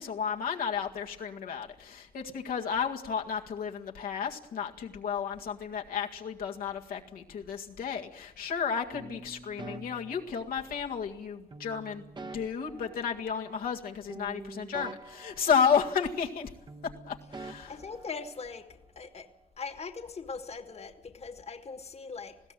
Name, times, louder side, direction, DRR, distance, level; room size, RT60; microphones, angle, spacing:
voice 1, 0.0-16.5 17.1-17.7, left 7 dB, 85° left, 2.0 m, -32 dB
sound 1, 8.9-10.9 11.5-13.8 14.1-16.4 16.7-18.7, right 3 dB, 30° right, 1.2 m, -46 dB
voice 2, 17.7-22.4, left 4 dB, 45° left, 1.7 m, -41 dB
20.5 x 16.0 x 9.2 m
cardioid pair, 75°, 15 cm